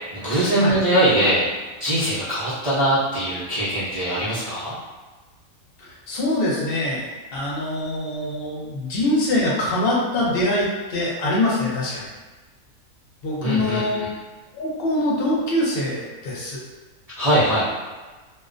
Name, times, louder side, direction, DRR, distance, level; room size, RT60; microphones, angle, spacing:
voice 1, 0.1-1.4 1.8-4.7 13.4-14.1 17.2-17.7, right 1 dB, 50° right, -12 dB, 0.4 m, -21 dB
voice 2, 5.8-12.1 13.2-14.0 14.5-16.6, left 1 dB, 55° left, -5 dB, 0.7 m, -24 dB
2.4 x 2.1 x 2.4 m, 1.3 s
omnidirectional pair, 1.5 m